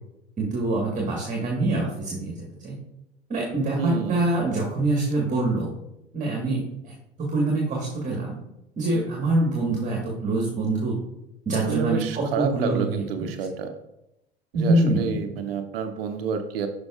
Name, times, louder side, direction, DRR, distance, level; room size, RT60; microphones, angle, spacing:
voice 1, 0.4-2.7 3.3-5.7 6.1-6.9 7.3-8.4 8.8-11.0 11.4-13.3 14.5-15.4, right 2 dB, 25° right, -1 dB, 1.5 m, -25 dB
voice 2, 3.8-4.3 11.7-13.8 14.5-16.7, right 6 dB, 65° right, 7 dB, 0.7 m, -29 dB
11.0 x 5.3 x 2.4 m, 0.89 s
figure-of-eight pair, 80°, 32 cm